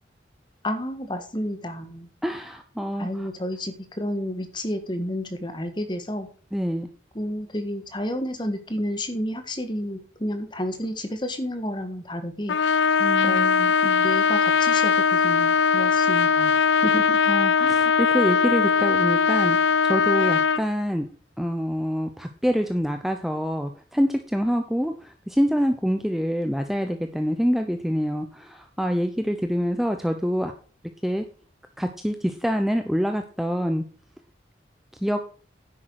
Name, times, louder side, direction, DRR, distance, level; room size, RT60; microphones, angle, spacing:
voice 1, 0.6-2.1 3.0-6.3 7.2-12.6 13.2-17.2, left 1 dB, 25° left, 8 dB, 1.6 m, -31 dB
voice 2, 2.2-3.3 6.5-6.9 13.0-13.7 16.7-16.8 17.3-19.6 19.8-21.1 21.4-30.5 31.0-31.2 31.8-33.8 35.0-35.2, equal, ahead, 6 dB, 0.7 m, -26 dB
Trumpet, 12.5-20.7, left 6 dB, 75° left, 0.5 m, -20 dB
10.0 x 8.5 x 4.8 m, 0.38 s
head